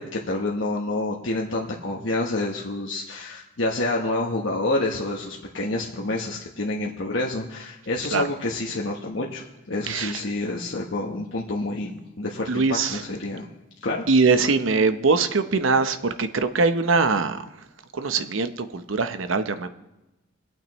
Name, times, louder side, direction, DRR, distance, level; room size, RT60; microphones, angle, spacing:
voice 1, 0.0-13.5 13.8-14.0, left 2 dB, 65° left, -2 dB, 1.1 m, -28 dB
voice 2, 9.9-10.2 12.5-13.0 14.1-17.4 17.9-19.7, right 4 dB, 80° right, 10 dB, 0.8 m, -22 dB
24.0 x 8.9 x 3.1 m, 1.0 s
head